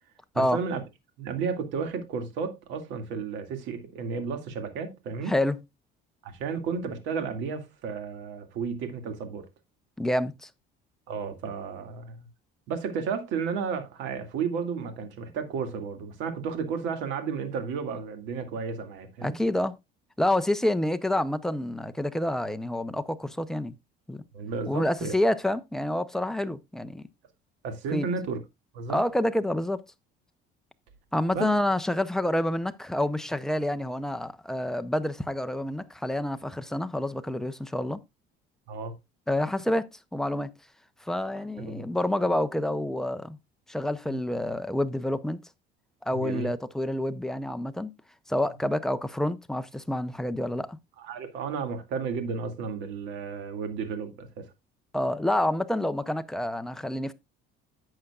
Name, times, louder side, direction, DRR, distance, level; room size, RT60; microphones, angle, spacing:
voice 1, 0.3-0.8 1.2-5.3 6.2-9.5 11.1-12.3 12.7-19.3 24.3-25.1 27.6-28.4 28.7-29.0 31.3-31.5 38.7-38.9 41.6-41.9 46.1-46.5 51.0-54.4, right 5 dB, 75° right, 2.1 m, -33 dB
voice 2, 5.3-5.6 10.0-10.5 19.2-19.7 20.2-23.7 24.1-24.2 24.7-27.0 27.9-28.1 28.9-29.8 31.1-38.0 39.3-40.5 41.0-43.4 43.7-45.4 46.0-47.9 48.3-50.8 54.9-57.1, left 1 dB, ahead, 0.5 m, -28 dB
11.0 x 7.8 x 2.3 m
cardioid pair, 150°, 19 cm